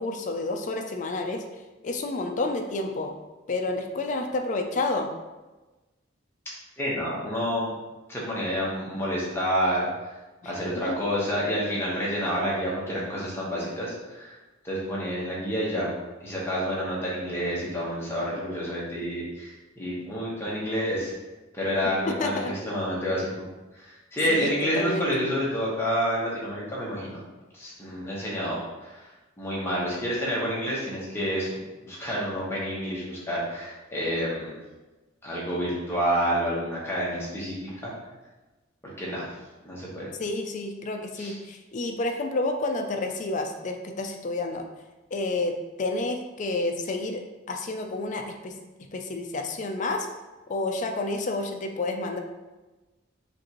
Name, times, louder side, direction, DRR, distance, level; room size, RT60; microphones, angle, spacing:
voice 1, 0.0-1.4 1.8-3.1 3.5-5.1 10.4-10.5 10.9-11.0 22.1-22.5 24.3-25.1 40.2-44.6 45.1-47.2 47.5-48.5 48.9-50.1 50.5-52.2, left 2 dB, 40° left, 4 dB, 0.4 m, -30 dB
voice 2, 6.8-7.7 8.1-10.1 10.4-14.3 14.6-15.9 16.2-21.1 21.5-23.3 23.8-27.2 27.5-29.0 29.4-31.5 31.8-34.5 35.2-37.9 39.0-39.2 39.6-40.1 41.2-41.3, equal, 10° left, -6 dB, 1.1 m, -29 dB
5.0 x 2.6 x 3.0 m, 1.2 s
head